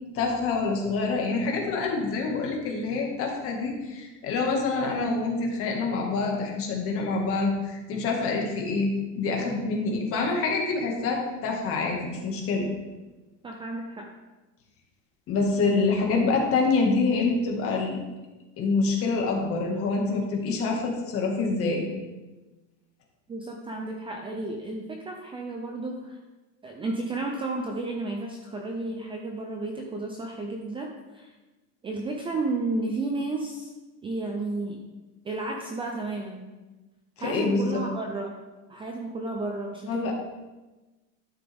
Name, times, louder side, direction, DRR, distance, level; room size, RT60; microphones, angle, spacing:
voice 1, 0.1-12.7 15.3-18.0 18.6-21.9 37.2-37.8 39.9-40.1, left 3 dB, 35° left, 0 dB, 1.9 m, -26 dB
voice 2, 13.4-14.1 23.3-26.2 26.6-31.3 31.8-33.7 34.0-34.8 35.2-36.5 37.2-38.3 38.7-40.1, right 2 dB, 15° right, 1 dB, 0.5 m, -32 dB
12.0 x 6.9 x 3.5 m, 1.1 s
cardioid pair, 170°, 37 cm